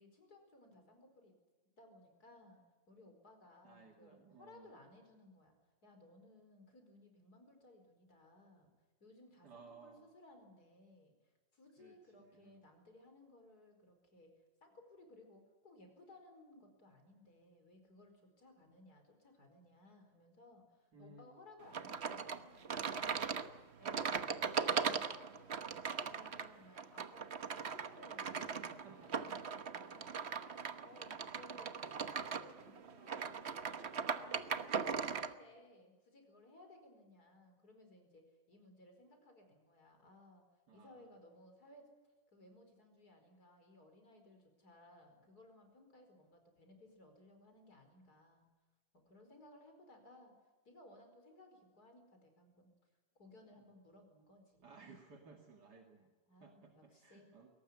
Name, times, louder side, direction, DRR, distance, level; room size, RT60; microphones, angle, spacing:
voice 1, 0.0-1.3 1.8-2.6 2.9-5.6 5.8-8.7 9.0-14.3 14.6-29.5 29.7-30.1 30.4-33.6 33.9-40.4 40.7-48.5 48.9-50.3 50.6-52.7 53.2-54.8 56.3-57.3, left 1 dB, 55° left, 5 dB, 5.4 m, -61 dB
voice 2, 3.6-4.8 9.4-10.0 11.8-12.6 20.9-21.4 28.6-29.3 31.1-31.3 40.7-41.1 54.6-56.1 56.4-57.5, right 4 dB, 60° right, 3 dB, 2.6 m, -59 dB
sound 1, 21.7-35.3, right 6 dB, 40° right, 1.1 m, -39 dB
22.0 x 18.5 x 9.7 m, 1.2 s
omnidirectional pair, 2.0 m